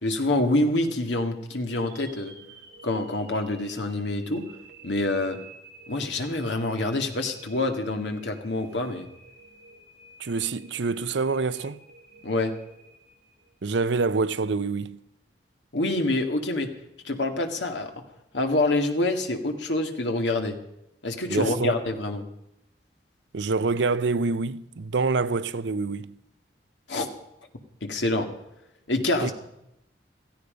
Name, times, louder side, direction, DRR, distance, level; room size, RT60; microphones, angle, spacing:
voice 1, 0.0-2.3 2.8-4.4 4.8-5.4 5.9-9.1 12.2-12.5 15.7-16.7 17.0-17.9 18.3-20.6 21.0-22.2 26.9-27.1 27.8-28.3 28.9-29.3, left 2 dB, 85° left, 2.1 m, -26 dB
sound 1, 1.8-13.9, right 3 dB, 55° right, 4.4 m, -51 dB
voice 2, 10.2-11.8 13.6-15.0 21.3-21.7 23.3-26.1 29.2-29.3, right 4 dB, 85° right, 0.6 m, -26 dB
16.5 x 15.0 x 5.1 m
head